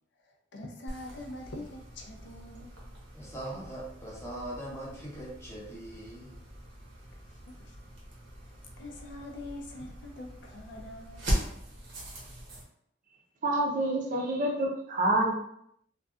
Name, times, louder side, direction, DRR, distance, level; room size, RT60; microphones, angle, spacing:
voice 1, 0.3-2.8 7.5-7.8 8.5-11.4, left 1 dB, 70° left, 2 dB, 0.5 m, -44 dB
sound 1, 0.9-12.6, equal, 90° right, 0.8 m, -40 dB
voice 2, 3.1-6.4, right 1 dB, 15° left, -4 dB, 0.7 m, -41 dB
voice 3, 13.4-15.3, right 1 dB, 45° right, -1 dB, 0.5 m, -27 dB
2.6 x 2.3 x 2.3 m, 0.71 s
head